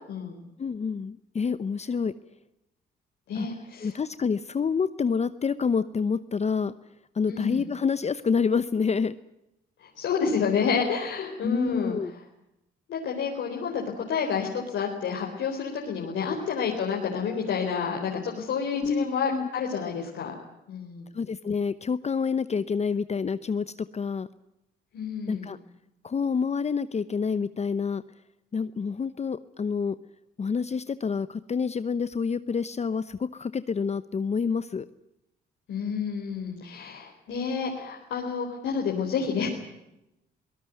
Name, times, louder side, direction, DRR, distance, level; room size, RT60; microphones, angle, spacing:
voice 1, 0.1-0.4 3.3-3.9 7.3-7.6 9.8-12.0 12.9-20.3 20.7-21.2 24.9-25.5 35.7-39.5, left 6 dB, 70° left, -1 dB, 4.4 m, -29 dB
voice 2, 0.6-2.1 3.3-3.5 3.8-6.7 7.1-9.2 11.4-12.1 18.8-19.5 21.1-23.6 23.9-24.3 25.3-25.6 26.0-28.0 28.5-30.0 30.4-34.8, left 5 dB, 35° left, 14 dB, 0.9 m, -28 dB
23.5 x 18.0 x 9.2 m, 0.87 s
cardioid pair, 90°, 20 cm